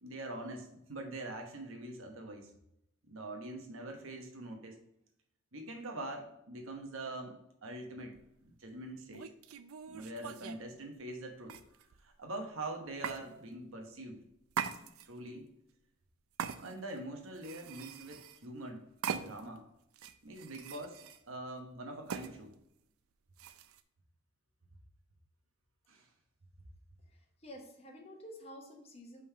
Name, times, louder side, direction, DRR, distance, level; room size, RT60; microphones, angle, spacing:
voice 1, 0.0-2.5 3.1-4.8 5.5-8.1 8.4-9.3 9.9-14.2 15.1-15.5 16.6-19.6 20.2-21.0 21.3-22.5 25.9-26.1, right 2 dB, 70° right, 3 dB, 1.0 m, -44 dB
sound 1, 8.1-8.3 9.1-10.6 11.5-12.1 13.0-13.2 14.5-15.3 16.4-17.0 17.4-18.5 19.0-19.6 19.9-21.2 22.1-22.3 23.4-23.8, right 7 dB, 85° right, 0.4 m, -41 dB
voice 2, 27.1-29.2, equal, 30° left, 2 dB, 0.9 m, -50 dB
5.3 x 3.6 x 5.5 m, 0.78 s
head